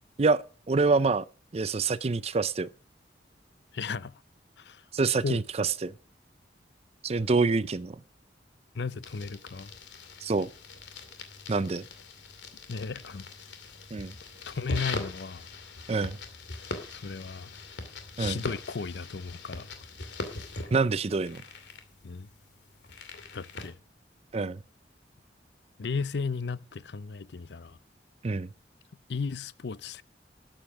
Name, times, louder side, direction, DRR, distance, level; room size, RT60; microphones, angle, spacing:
voice 1, 0.2-1.2 1.5-2.7 4.9-5.9 7.0-8.0 10.2-10.5 11.5-11.9 13.9-14.1 15.9-16.2 18.2-18.4 20.7-21.4 24.3-24.6 28.2-28.5, right 4 dB, 35° right, 0.5 m, -26 dB
voice 2, 3.7-4.1 4.6-4.8 5.1-5.4 8.7-9.7 12.7-13.3 14.5-15.5 16.9-17.5 18.2-19.7 22.0-22.3 23.3-23.8 25.8-27.8 29.1-30.0, left 5 dB, 70° left, 0.6 m, -35 dB
sound 1, 9.0-23.7, left 3 dB, 85° left, 2.5 m, -41 dB
12.5 x 8.8 x 6.0 m
head